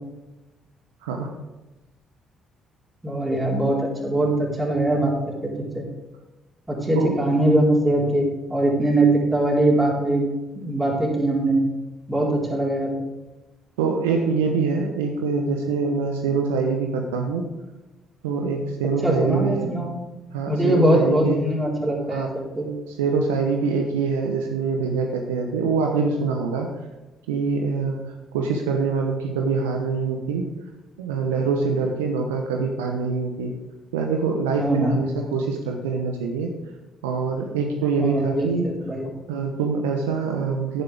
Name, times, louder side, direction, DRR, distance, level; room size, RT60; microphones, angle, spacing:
voice 1, 3.0-5.1 5.6-5.8 6.7-10.3 10.5-11.6 12.1-12.9 19.0-19.9 20.5-22.7 34.6-35.0 38.0-39.1, right 1 dB, 20° right, -2 dB, 4.1 m, -22 dB
voice 2, 13.8-17.5 18.2-19.7 20.3-21.5 22.1-22.3 22.9-26.7 27.3-30.5 31.0-33.5 33.9-36.5 37.0-38.7 39.3-40.8, right 4 dB, 80° right, 3 dB, 0.9 m, -24 dB
10.5 x 10.5 x 3.5 m, 1.1 s
hypercardioid pair, 45°, 0 cm